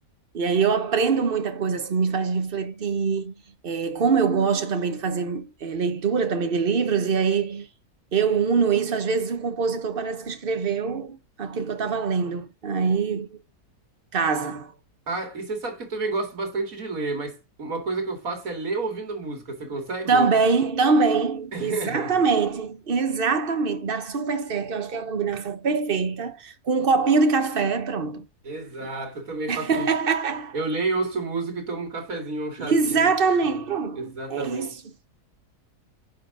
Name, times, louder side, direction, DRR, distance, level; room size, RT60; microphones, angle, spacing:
voice 1, 0.3-3.3 3.6-7.7 8.1-13.4 14.1-14.7 20.1-28.2 29.5-30.6 32.6-34.8, right 5 dB, 40° right, 1.2 m, -24 dB
voice 2, 15.1-20.3 21.5-22.1 28.4-29.9 30.5-33.1 34.0-34.7, right 3 dB, 65° right, 2.8 m, -30 dB
9.2 x 5.8 x 3.8 m
omnidirectional pair, 1.6 m